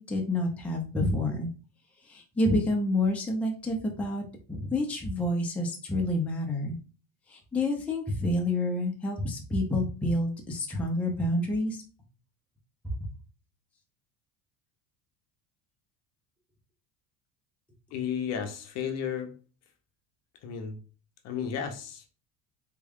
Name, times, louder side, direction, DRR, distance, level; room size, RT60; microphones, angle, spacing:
voice 1, 0.0-1.5 2.0-6.8 7.3-11.8 12.8-12.9, left 1 dB, 5° left, 0.5 m, -28 dB
voice 2, 17.9-19.4 20.4-20.8 21.2-22.2, left 7 dB, 45° left, 0.6 m, -33 dB
3.6 x 2.2 x 3.5 m
cardioid pair, 155°, 36 cm